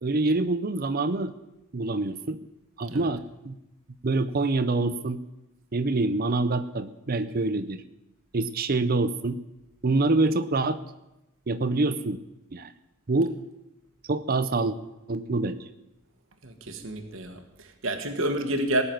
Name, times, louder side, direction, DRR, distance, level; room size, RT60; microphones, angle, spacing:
voice 1, 0.0-1.3 1.7-2.4 2.8-3.6 4.0-5.2 5.7-7.8 8.3-9.4 9.8-10.8 11.5-12.2 12.5-12.7 13.1-13.4 14.1-14.8 15.1-15.7, right 2 dB, 45° right, 12 dB, 0.6 m, -26 dB
voice 2, 16.4-18.8, right 1 dB, 60° right, 5 dB, 1.5 m, -29 dB
18.5 x 7.0 x 9.3 m, 0.94 s
head